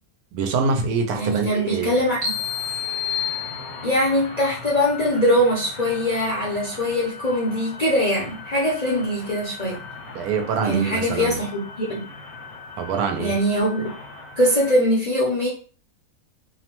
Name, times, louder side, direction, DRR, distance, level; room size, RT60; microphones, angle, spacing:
voice 1, 0.3-2.0 10.1-11.4 12.8-13.3, right 5 dB, 80° right, 4 dB, 1.1 m, -24 dB
sound 1, 1.1-14.8, left 3 dB, 70° left, 1.1 m, -40 dB
voice 2, 1.1-2.3 3.8-9.8 10.6-12.0 13.2-13.9 14.4-15.5, equal, 45° left, -6 dB, 0.5 m, -22 dB
sound 2, 2.2-4.2, left 7 dB, 55° right, 1.1 m, -28 dB
2.8 x 2.1 x 2.9 m, 0.40 s
omnidirectional pair, 1.6 m